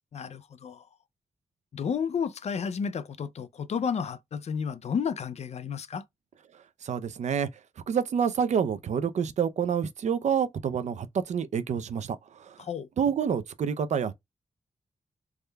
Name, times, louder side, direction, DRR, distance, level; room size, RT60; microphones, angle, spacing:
voice 1, 0.1-0.8 1.7-6.0 12.6-12.9, left 6 dB, 60° left, 0.4 m, -32 dB
voice 2, 6.8-7.5 7.9-12.5 13.0-14.1, right 7 dB, 70° right, 0.5 m, -28 dB
3.6 x 2.2 x 3.2 m
cardioid pair, 70°, 12 cm